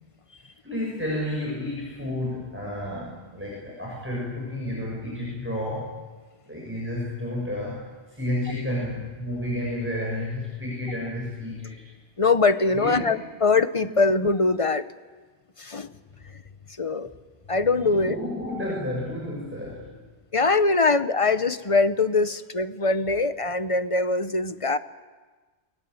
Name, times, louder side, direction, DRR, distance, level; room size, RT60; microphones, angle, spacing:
voice 1, 0.6-6.0 6.5-11.8 12.7-13.1 17.8-20.0, left 1 dB, 10° right, -4 dB, 6.3 m, -31 dB
voice 2, 12.2-14.8 15.6-15.9 16.8-17.1 17.5-18.2 20.3-24.8, left 3 dB, 30° left, 11 dB, 0.9 m, -22 dB
28.5 x 21.0 x 7.9 m, 1.3 s
omnidirectional pair, 1.1 m